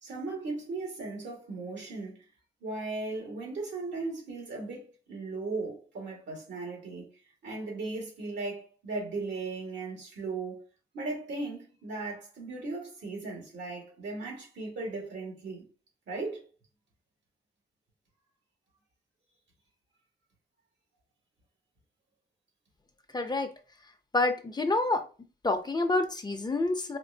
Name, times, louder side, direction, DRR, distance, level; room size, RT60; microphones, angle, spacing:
voice 1, 0.0-2.1 2.6-7.0 7.4-10.6 10.9-15.7 16.1-16.4, right 3 dB, 85° right, 1.9 m, -37 dB
voice 2, 23.1-23.5 24.1-25.0 25.4-27.0, left 2 dB, 25° left, 0.6 m, -27 dB
4.3 x 2.5 x 2.8 m
cardioid pair, 75°, 18 cm